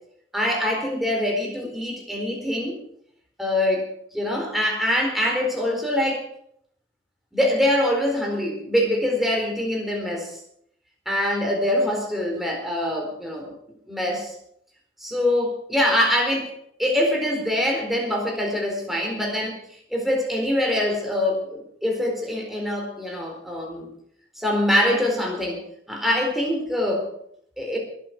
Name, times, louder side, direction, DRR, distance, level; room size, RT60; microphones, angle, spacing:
voice 1, 0.3-2.8 3.4-6.3 7.3-10.4 11.1-13.5 13.9-14.3 15.0-16.5 16.8-19.6 19.9-23.9 24.4-25.6 25.9-27.1 27.6-27.8, left 1 dB, ahead, 0 dB, 4.3 m, -24 dB
22.0 x 8.6 x 6.1 m, 0.69 s
head